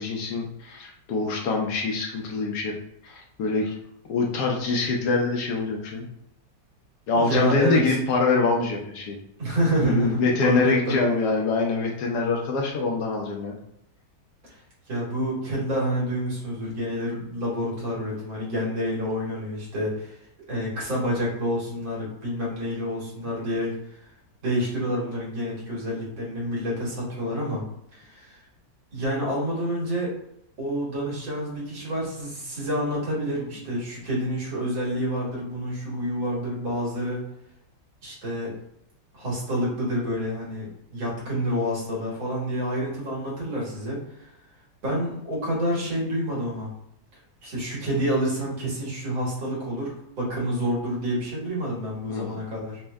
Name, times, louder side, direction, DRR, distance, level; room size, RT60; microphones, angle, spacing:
voice 1, 0.0-2.7 3.0-3.8 4.1-6.1 7.1-9.2 9.8-13.6 52.1-52.4, left 3 dB, 70° left, 0 dB, 1.0 m, -25 dB
voice 2, 7.1-8.0 9.4-11.3 14.4-14.5 14.9-20.2 20.5-23.7 24.4-27.6 27.9-28.4 28.9-30.1 30.6-37.3 38.0-38.5 39.1-44.0 44.8-46.7 47.4-52.8, equal, 80° right, -5 dB, 2.2 m, -28 dB
4.4 x 2.1 x 3.4 m, 0.75 s
omnidirectional pair, 2.1 m